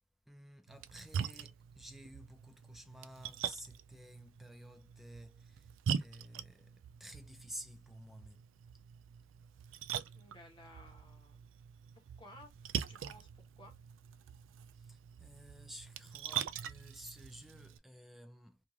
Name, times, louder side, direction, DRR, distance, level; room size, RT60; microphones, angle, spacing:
voice 1, 0.3-5.7 5.9-8.4 14.8-18.6, equal, ahead, 0.4 m, -53 dB
Splash splatter, 0.7-17.8, right 8 dB, 75° right, 0.3 m, -43 dB
voice 2, 10.1-11.4 11.9-12.5 12.9-13.3 13.6-13.7, left 1 dB, 25° left, 1.1 m, -57 dB
2.5 x 2.4 x 3.0 m
head